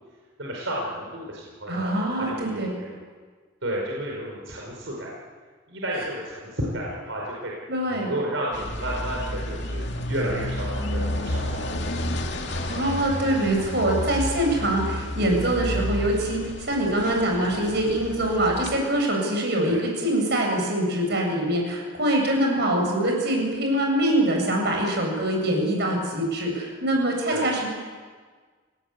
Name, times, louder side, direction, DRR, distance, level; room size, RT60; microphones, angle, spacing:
voice 1, 0.4-3.0 3.6-5.1 5.7-7.5 7.9-11.9 19.7-19.8 27.3-27.5, right 1 dB, 70° right, -3 dB, 5.1 m, -32 dB
voice 2, 1.7-2.7 7.7-8.1 12.7-27.7, right 1 dB, 55° right, 1 dB, 7.8 m, -24 dB
sound 1, 8.5-18.8, left 1 dB, 55° left, 2.6 m, -31 dB
29.0 x 18.0 x 8.4 m, 1.5 s
head